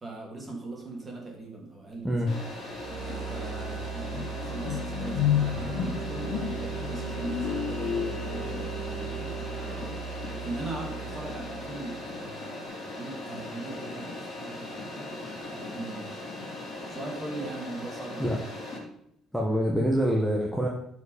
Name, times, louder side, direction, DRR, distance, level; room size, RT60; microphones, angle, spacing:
voice 1, 0.0-2.2 3.3-9.3 9.6-10.0 10.3-15.2 15.5-16.2 16.9-18.4, right 2 dB, 20° right, -1 dB, 2.9 m, -40 dB
sound 1, 2.3-18.8, left 2 dB, 35° left, 3.1 m, -39 dB
sound 2, 2.5-2.6 3.0-9.1, left 10 dB, 65° left, 0.8 m, -32 dB
sound 3, 2.7-12.2, right 6 dB, 65° right, 0.9 m, -38 dB
voice 2, 19.3-20.7, equal, ahead, -2 dB, 1.1 m, -25 dB
11.5 x 4.9 x 5.0 m, 0.73 s
cardioid pair, 150°, 0 cm